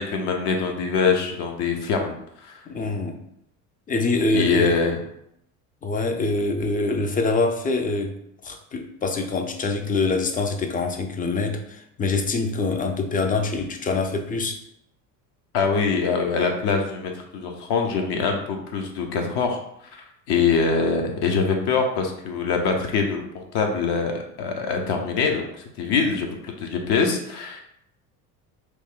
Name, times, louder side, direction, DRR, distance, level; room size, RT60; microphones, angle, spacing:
voice 1, 0.0-2.6 4.3-5.0 15.5-19.6 19.9-23.2 23.5-24.1 24.4-25.5 25.8-27.6, left 5 dB, 60° left, 3 dB, 0.8 m, -24 dB
voice 2, 2.7-3.2 3.9-4.8 5.8-8.2 8.4-14.6, left 3 dB, 20° left, 5 dB, 0.4 m, -25 dB
3.0 x 2.1 x 3.6 m, 0.74 s
hypercardioid pair, 75°, 45 cm